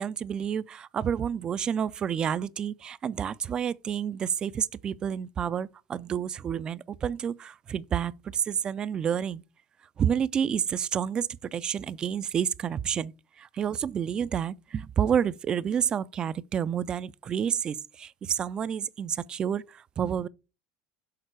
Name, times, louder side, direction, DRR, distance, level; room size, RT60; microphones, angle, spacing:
voice 1, 0.0-9.4 10.0-20.3, right 8 dB, 35° right, 0.3 m, -29 dB
6.6 x 4.0 x 4.5 m
hypercardioid pair, 95°, 2 cm